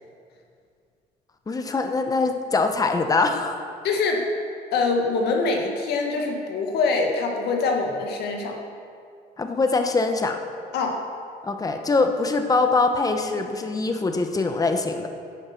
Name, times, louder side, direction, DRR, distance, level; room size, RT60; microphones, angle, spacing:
voice 1, 1.5-3.6 9.4-10.4 11.4-15.1, left 3 dB, 20° left, 6 dB, 1.0 m, -23 dB
voice 2, 3.8-4.2 4.7-8.6 10.7-11.0, left 4 dB, 75° left, 2 dB, 1.8 m, -24 dB
11.0 x 8.7 x 5.9 m, 2.3 s
cardioid pair, 110°, 17 cm